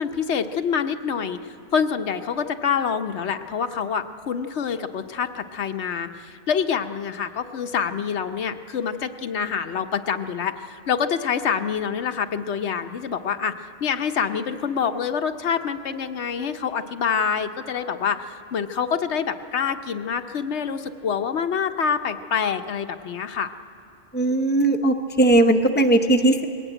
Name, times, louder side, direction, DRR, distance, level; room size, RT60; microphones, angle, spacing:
voice 1, 0.0-23.5, left 7 dB, 85° left, 7 dB, 1.1 m, -26 dB
voice 2, 24.1-26.4, right 2 dB, 10° left, 4 dB, 0.8 m, -18 dB
20.5 x 17.0 x 9.1 m, 3.0 s
omnidirectional pair, 1.1 m